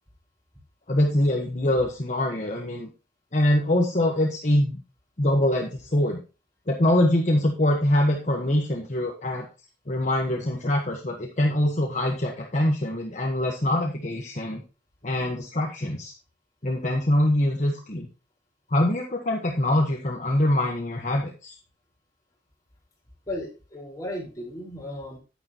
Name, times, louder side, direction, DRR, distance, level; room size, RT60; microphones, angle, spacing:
voice 1, 0.9-2.9 3.3-4.8 5.2-6.2 6.7-9.5 9.9-14.6 15.0-16.1 16.6-18.1 18.7-21.5, left 1 dB, 45° left, 1 dB, 1.3 m, -24 dB
voice 2, 23.3-25.2, left 1 dB, 20° left, -4 dB, 4.9 m, -35 dB
10.5 x 9.6 x 3.0 m, 0.32 s
head